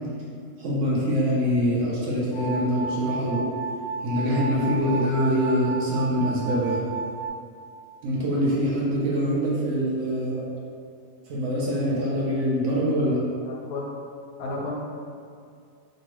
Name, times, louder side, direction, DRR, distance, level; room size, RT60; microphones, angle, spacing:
voice 1, 0.6-3.5 4.0-6.8 8.0-10.5 11.3-13.2, equal, 70° right, -6 dB, 0.7 m, -24 dB
sound 1, 2.3-7.3, right 4 dB, 25° right, 0.6 m, -32 dB
voice 2, 13.4-13.9 14.4-14.8, left 2 dB, 70° left, -2 dB, 1.0 m, -32 dB
2.9 x 2.6 x 2.9 m, 2.3 s
omnidirectional pair, 1.8 m